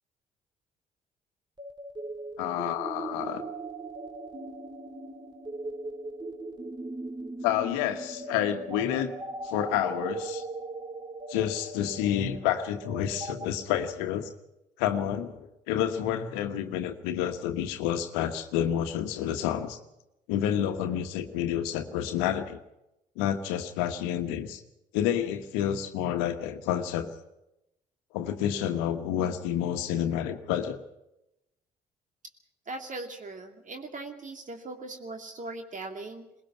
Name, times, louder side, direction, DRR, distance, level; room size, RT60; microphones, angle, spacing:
sound 1, 1.6-13.5, right 2 dB, 20° right, 2.7 m, -39 dB
voice 1, 2.4-3.4 7.4-9.1 9.4-10.5 11.3-14.3 14.8-19.8 20.3-22.6 23.2-24.6 24.9-27.1 28.1-30.8, left 10 dB, 75° left, 8 dB, 1.4 m, -29 dB
voice 2, 32.7-36.3, right 2 dB, 40° right, 4 dB, 2.4 m, -39 dB
22.0 x 20.5 x 5.8 m, 0.89 s
hypercardioid pair, 45°, 20 cm